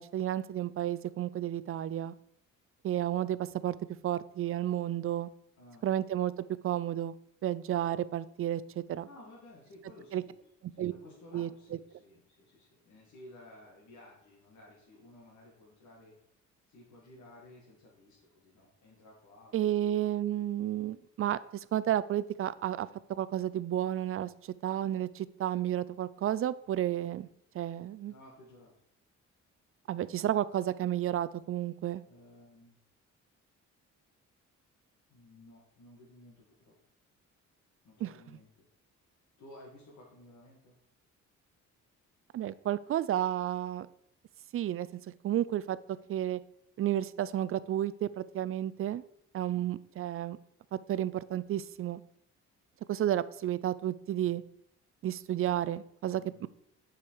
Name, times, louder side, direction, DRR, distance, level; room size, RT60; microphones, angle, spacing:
voice 1, 0.0-2.1 2.8-3.8 4.0-5.3 5.8-6.3 6.6-7.1 7.4-9.1 10.1-10.2 10.8-10.9 11.3-11.5 19.5-27.3 27.5-28.1 29.9-32.0 38.0-38.1 42.3-43.9 44.5-45.8 46.1-46.4 46.8-49.0 49.3-50.4 50.7-52.0 52.9-54.4 55.0-56.5, right 12 dB, 45° right, 17 dB, 0.4 m, -32 dB
voice 2, 5.6-5.9 9.0-10.4 10.7-16.1 16.7-19.9 28.1-28.7 32.1-32.8 35.1-36.8 37.8-38.7 39.4-40.8 49.5-49.7 56.2-56.4, left 1 dB, 70° left, -5 dB, 2.1 m, -55 dB
6.9 x 5.0 x 4.7 m, 0.74 s
cardioid pair, 90°, 30 cm